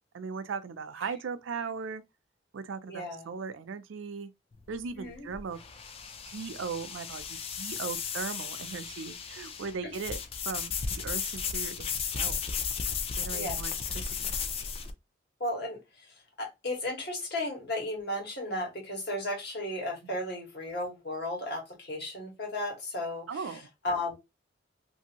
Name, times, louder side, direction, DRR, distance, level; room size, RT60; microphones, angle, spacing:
voice 1, 0.1-2.0 2.5-4.3 4.7-5.6 6.3-10.2 10.5-12.4 13.2-14.3 20.0-20.2 23.3-23.7, right 5 dB, 90° right, 0.4 m, -38 dB
voice 2, 2.9-3.3 5.0-5.3 9.8-9.9 13.3-13.6 15.4-24.2, left 1 dB, 60° left, 1.3 m, -35 dB
sound 1, 4.5-14.9, left 6 dB, 30° left, 0.3 m, -35 dB
2.7 x 2.5 x 2.8 m
head